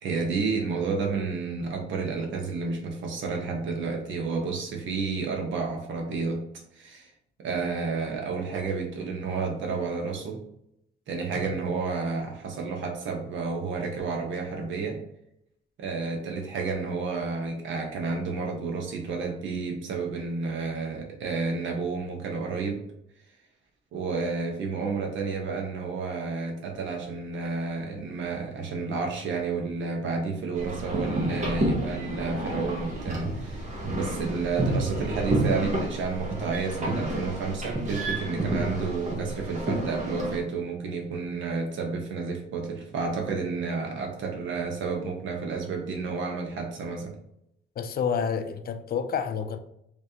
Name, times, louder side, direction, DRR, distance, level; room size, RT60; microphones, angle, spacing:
voice 1, 0.0-6.4 6.7-7.1 7.4-10.4 11.1-15.0 15.8-22.8 23.9-47.1, right 4 dB, 75° right, 1.0 m, -31 dB
sound 1, 30.5-40.4, right 1 dB, 35° right, 1.4 m, -30 dB
voice 2, 47.8-49.6, left 7 dB, 50° left, 0.4 m, -29 dB
3.3 x 3.2 x 2.8 m
cardioid pair, 90°, 20 cm